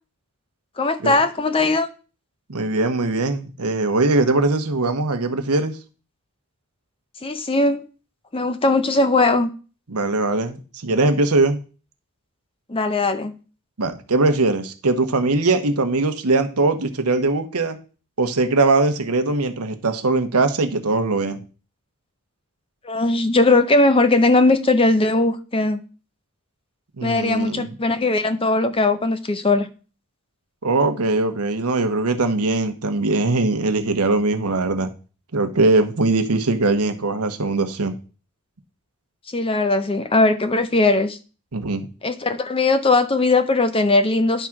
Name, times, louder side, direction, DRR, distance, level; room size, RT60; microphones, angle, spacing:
voice 1, 0.8-1.9 7.2-7.8 8.3-9.5 12.7-13.3 22.8-25.8 27.0-29.7 39.3-41.2 42.0-44.5, left 2 dB, 25° left, 0.7 m, -19 dB
voice 2, 2.5-5.8 9.9-10.6 10.8-11.6 13.8-17.8 18.2-21.4 27.0-27.7 30.6-34.9 35.3-38.0 41.5-41.9, right 3 dB, 85° right, 1.1 m, -21 dB
10.5 x 3.7 x 5.9 m
head